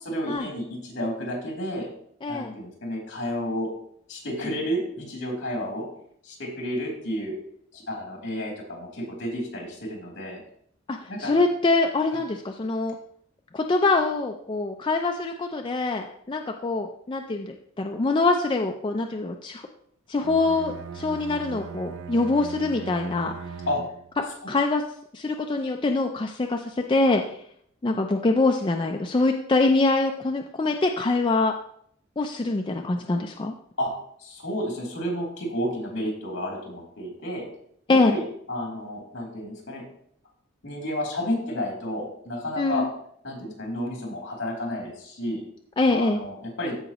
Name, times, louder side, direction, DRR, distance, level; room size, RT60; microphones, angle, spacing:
voice 1, 0.0-1.9 2.3-3.7 4.1-5.8 6.2-7.3 7.7-10.4 11.1-11.4 12.1-12.2 23.7-23.8 24.4-24.5 33.8-33.9 34.2-37.4 38.0-38.2 38.5-39.8 40.6-42.8 43.2-45.4 45.9-46.8, equal, 60° left, -2 dB, 3.0 m, -31 dB
voice 2, 2.2-2.5 10.9-13.0 13.5-19.6 20.1-23.4 24.2-24.8 25.1-27.4 27.8-31.6 32.2-33.5 37.9-38.2 42.6-42.9 45.8-46.2, left 3 dB, 25° left, 3 dB, 0.4 m, -24 dB
Bowed string instrument, 20.2-24.2, right 6 dB, 75° right, 0.4 m, -39 dB
14.5 x 5.0 x 3.0 m, 0.67 s
head